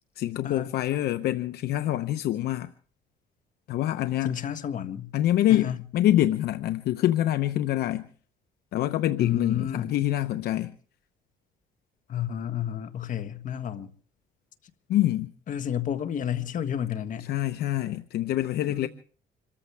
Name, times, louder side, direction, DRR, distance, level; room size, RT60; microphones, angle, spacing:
voice 1, 0.2-2.7 3.7-4.4 5.1-8.1 8.7-10.7 14.9-15.3 17.2-18.9, left 13 dB, 70° left, 0.8 m, -25 dB
voice 2, 4.2-5.1 5.5-5.8 9.2-9.9 12.1-13.9 15.5-17.3 18.7-18.9, left 9 dB, 50° left, 1.5 m, -31 dB
26.5 x 14.5 x 3.4 m
cardioid pair, 110°, 17 cm